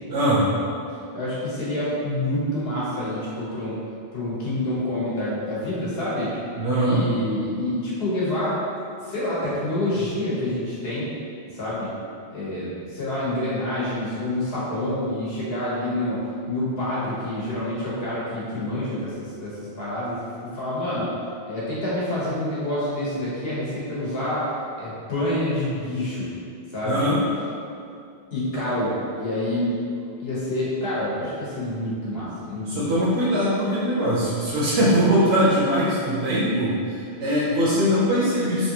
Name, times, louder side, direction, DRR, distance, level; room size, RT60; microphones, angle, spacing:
voice 1, 0.1-0.5 6.6-7.0 26.9-27.2 32.7-38.7, equal, 80° right, -8 dB, 0.9 m, -21 dB
voice 2, 1.1-3.8 4.1-6.3 6.7-8.6 9.0-11.1 11.5-11.9 12.3-16.2 16.5-19.1 19.4-21.1 21.5-24.5 24.8-26.3 26.7-27.1 28.3-29.8 30.2-33.1, left 1 dB, 70° left, -8 dB, 1.1 m, -27 dB
3.1 x 2.6 x 2.8 m, 2.5 s
omnidirectional pair, 1.1 m